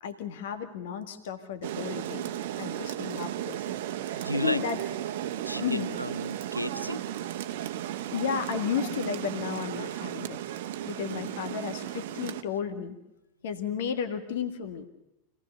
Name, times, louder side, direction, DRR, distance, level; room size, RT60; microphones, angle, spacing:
voice 1, 0.0-2.3 2.6-4.8 5.6-5.9 8.1-10.4 10.8-13.0 13.4-14.9, left 8 dB, 55° left, 9 dB, 1.8 m, -33 dB
Rain, 1.6-12.4, right 12 dB, 55° right, 1.0 m, -35 dB
voice 2, 4.2-4.6 5.4-7.0 11.1-11.2, equal, 90° left, 14 dB, 0.7 m, -33 dB
26.0 x 18.0 x 6.9 m, 0.88 s
figure-of-eight pair, 90°, 0 cm